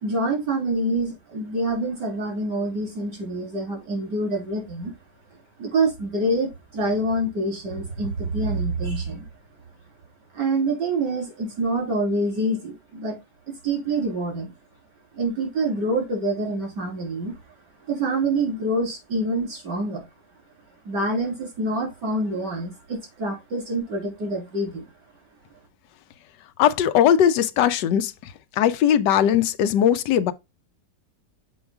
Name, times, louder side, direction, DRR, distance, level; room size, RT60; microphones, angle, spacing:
voice 1, 0.0-4.9 5.6-9.3 10.3-13.2 13.5-14.5 15.2-17.4 17.9-20.0 20.9-24.8, right 2 dB, 75° right, 3.7 m, -26 dB
voice 2, 26.6-28.1 28.6-30.3, left 9 dB, 85° left, 1.3 m, -19 dB
7.0 x 4.7 x 3.4 m
omnidirectional pair, 1.8 m